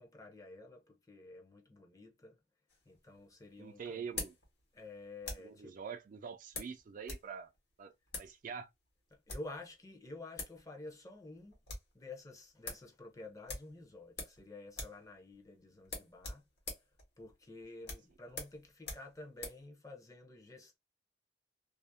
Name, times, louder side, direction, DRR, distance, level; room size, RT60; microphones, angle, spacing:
voice 1, 0.0-2.4 2.9-4.0 4.7-5.8 9.3-11.6 11.9-16.4 17.2-20.8, left 2 dB, 20° left, 0.6 m, -50 dB
sound 1, 2.7-5.6 6.5-7.3 7.5-7.6 8.1-8.3 9.1-9.6 10.1-10.2 10.4-10.6 10.9-11.0 11.3-11.9 12.3-12.4 12.6-12.9 13.5-14.4 14.7-15.0 15.3-15.4 15.8-19.6, left 3 dB, 65° left, 1.0 m, -45 dB
voice 2, 3.6-4.3 5.4-7.5 7.8-8.7, right 6 dB, 45° right, 0.3 m, -45 dB
2.4 x 2.0 x 2.5 m
head